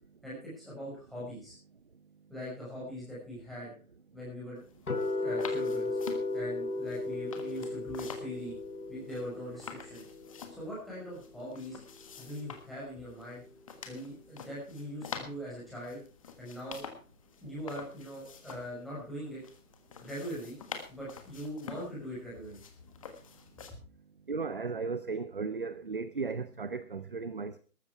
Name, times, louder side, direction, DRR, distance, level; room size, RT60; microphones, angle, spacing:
voice 1, 0.2-1.5 2.3-3.7 4.1-4.6 5.2-6.0 6.3-8.5 8.9-10.1 10.5-11.8 12.2-13.4 13.9-16.0 16.4-16.8 17.4-19.4 20.0-20.6 20.9-22.6, equal, ahead, 5.6 m, -41 dB
sound 1, 4.6-23.7, left 6 dB, 20° left, 1.4 m, -48 dB
sound 2, 4.9-10.9, left 2 dB, 75° left, 4.1 m, -35 dB
voice 2, 24.3-27.6, right 4 dB, 35° right, 0.6 m, -35 dB
14.0 x 13.0 x 4.6 m
hypercardioid pair, 165°, 45 cm